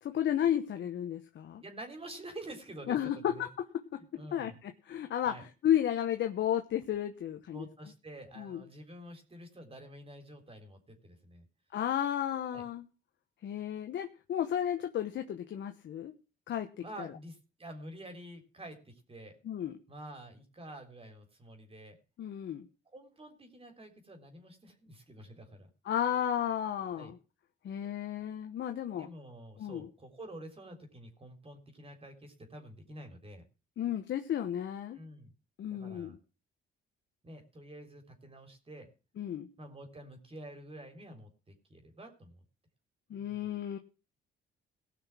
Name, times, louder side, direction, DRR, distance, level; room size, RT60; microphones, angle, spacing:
voice 1, 0.0-1.6 2.9-7.7 8.4-8.6 11.7-12.8 13.4-16.1 16.5-16.7 17.0-17.1 19.4-19.8 22.2-22.7 25.8-27.2 27.6-29.1 29.6-29.9 33.8-35.0 35.6-36.2 39.2-39.5 43.1-43.8, left 10 dB, 65° left, 6 dB, 1.2 m, -33 dB
voice 2, 1.6-3.5 3.9-4.6 5.2-5.4 7.5-11.5 12.5-12.6 16.8-19.4 19.9-22.0 22.9-25.7 26.9-27.1 28.9-33.4 34.9-35.3 35.7-36.2 37.2-38.9 39.6-41.3 41.7-42.4 43.1-43.5, right 1 dB, 30° right, 5 dB, 3.8 m, -48 dB
18.0 x 6.2 x 6.1 m, 0.34 s
cardioid pair, 90°, 20 cm